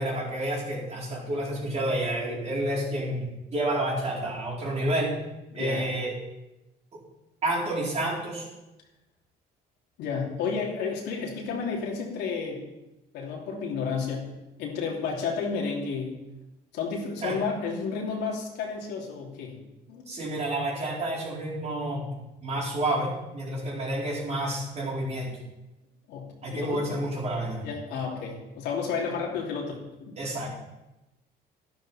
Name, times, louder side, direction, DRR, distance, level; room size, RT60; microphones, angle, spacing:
voice 1, 0.0-3.3 3.5-5.1 5.5-6.1 7.4-8.5 17.2-17.3 20.1-22.1 22.4-25.4 26.4-27.6 30.2-30.5, right 1 dB, 40° right, -4 dB, 4.7 m, -29 dB
voice 2, 5.5-5.9 10.0-12.6 13.1-16.2 16.7-19.6 19.9-20.0 26.1-26.9 27.6-30.2, left 5 dB, 85° left, -2 dB, 3.2 m, -32 dB
12.0 x 11.5 x 4.4 m, 0.97 s
cardioid pair, 110°, 17 cm